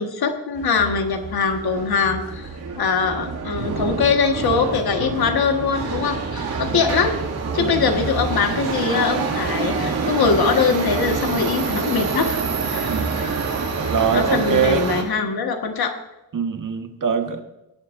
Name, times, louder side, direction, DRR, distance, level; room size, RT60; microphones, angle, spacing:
voice 1, 0.0-7.2 7.5-12.4 12.7-13.5 14.1-15.9, left 5 dB, 85° left, 4 dB, 1.7 m, -22 dB
Subway metro underground, 0.6-15.0, right 4 dB, 85° right, 2.5 m, -26 dB
voice 2, 7.6-7.9 12.9-13.3 13.9-14.8 16.3-17.4, right 6 dB, 60° right, 4 dB, 1.7 m, -23 dB
20.5 x 11.0 x 2.7 m, 0.95 s
wide cardioid pair, 105°, 36 cm